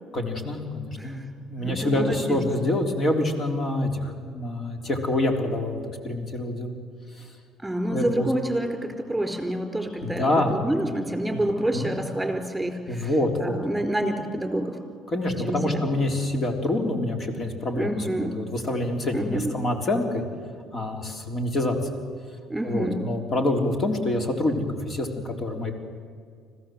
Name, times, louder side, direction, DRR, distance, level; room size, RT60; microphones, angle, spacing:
voice 1, 0.1-1.2 1.5-6.7 7.1-7.3 7.9-8.3 10.0-10.7 11.3-11.4 11.7-11.9 12.9-13.6 15.1-18.1 18.3-20.2 20.7-22.0 22.6-25.7, left 1 dB, 40° left, 4 dB, 3.6 m, -26 dB
voice 2, 1.6-2.4 7.6-13.1 13.4-14.8 15.4-15.9 17.7-18.4 19.1-19.5 22.5-23.1, right 1 dB, 5° right, 5 dB, 4.1 m, -28 dB
26.0 x 16.0 x 7.8 m, 2.2 s
supercardioid pair, 80°, 0 cm